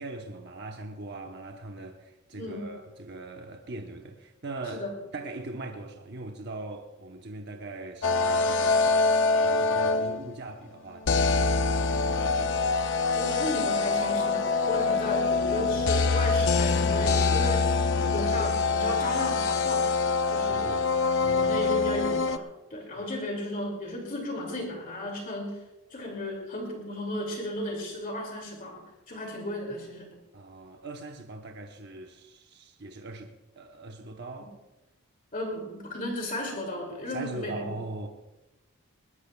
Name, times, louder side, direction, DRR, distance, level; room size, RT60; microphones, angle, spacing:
voice 1, 0.0-4.9 5.1-12.6 20.5-20.8 21.2-21.5 23.0-23.1 30.3-34.5 37.1-38.1, right 2 dB, 50° right, 1.0 m, -41 dB
voice 2, 2.3-2.7 4.7-4.9 13.2-19.9 20.3-20.8 21.3-22.4 22.7-25.6 25.9-30.1 35.3-37.6, left 1 dB, 40° left, 2.6 m, -34 dB
sound 1, 8.0-10.3 11.1-22.4, left 4 dB, 55° left, 0.6 m, -25 dB
21.0 x 20.0 x 2.3 m
head